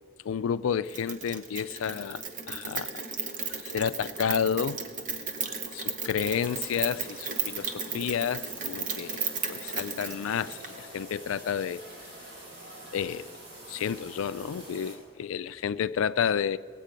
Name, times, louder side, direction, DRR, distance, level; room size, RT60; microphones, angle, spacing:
voice 1, 0.2-3.0 3.6-4.8 5.7-11.9 12.9-13.4 13.7-16.6, left 8 dB, 85° left, 0.3 m, -31 dB
Rain, 0.9-10.8, right 5 dB, 40° right, 0.9 m, -35 dB
sound 1, 6.2-14.9, right 1 dB, 55° right, 3.6 m, -46 dB
18.0 x 8.3 x 5.1 m
head